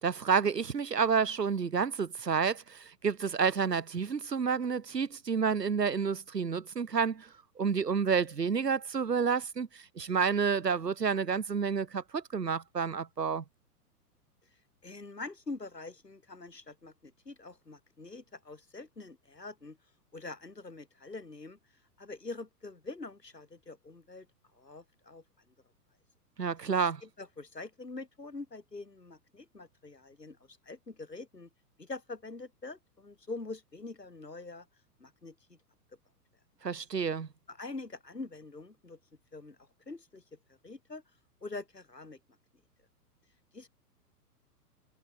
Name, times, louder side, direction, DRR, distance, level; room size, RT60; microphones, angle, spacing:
voice 1, 0.0-7.3 7.6-13.4 26.4-27.0 36.6-37.3, right 6 dB, 85° right, 1.1 m, -29 dB
voice 2, 14.8-19.8 20.1-21.6 22.0-24.3 24.5-25.2 27.0-31.5 31.8-34.7 35.0-35.6 37.5-39.0 39.3-40.4 40.6-41.0 41.4-42.2 43.5-43.7, left 3 dB, 85° left, 3.1 m, -44 dB
figure-of-eight pair, 110°, 47 cm